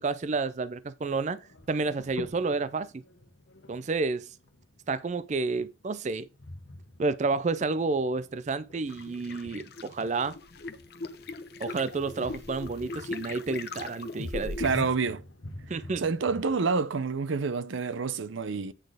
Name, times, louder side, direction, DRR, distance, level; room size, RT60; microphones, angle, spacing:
voice 1, 0.0-1.4 1.7-3.0 3.7-4.3 4.9-6.3 7.0-10.4 11.6-14.6 15.7-16.0, right 3 dB, 35° right, 0.4 m, -30 dB
sound 1, 1.0-16.5, left 1 dB, 85° left, 1.2 m, -50 dB
sound 2, 8.9-14.9, left 3 dB, 55° left, 0.9 m, -39 dB
voice 2, 14.6-15.2 16.0-18.7, right 4 dB, 85° right, 0.6 m, -28 dB
8.9 x 4.1 x 4.8 m
head